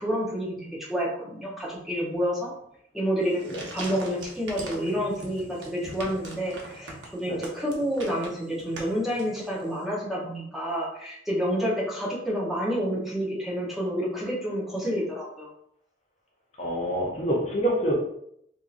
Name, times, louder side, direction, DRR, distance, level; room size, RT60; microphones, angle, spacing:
voice 1, 0.0-2.5 2.9-15.5, equal, ahead, -6 dB, 0.9 m, -29 dB
sound 1, 3.2-9.8, right 2 dB, 85° right, 0.8 m, -43 dB
voice 2, 16.6-17.9, right 1 dB, 35° left, -3 dB, 0.6 m, -26 dB
3.6 x 2.7 x 2.5 m, 0.72 s
head